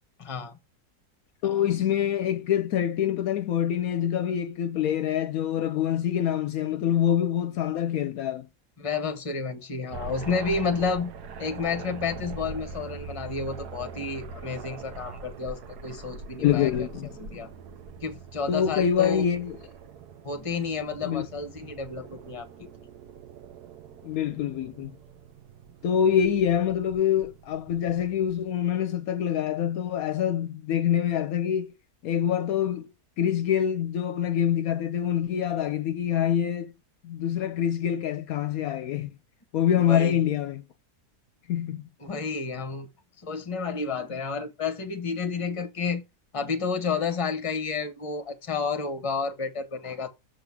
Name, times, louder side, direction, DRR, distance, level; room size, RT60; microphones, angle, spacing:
voice 1, 0.2-0.5 8.8-11.1 11.4-16.7 17.2-17.5 18.0-19.2 20.2-22.7 39.8-40.2 42.0-42.9 43.2-46.0 46.3-50.1, left 5 dB, 25° left, 0.9 m, -31 dB
voice 2, 1.4-8.5 16.4-17.1 18.5-19.6 21.0-21.3 24.0-25.0 25.8-31.7 32.0-32.9 33.2-36.7 37.0-39.1 39.5-40.6 41.5-41.8, left 9 dB, 70° left, 1.0 m, -25 dB
sound 1, 9.9-28.5, right 5 dB, 80° right, 1.4 m, -43 dB
6.9 x 3.7 x 5.9 m
omnidirectional pair, 1.7 m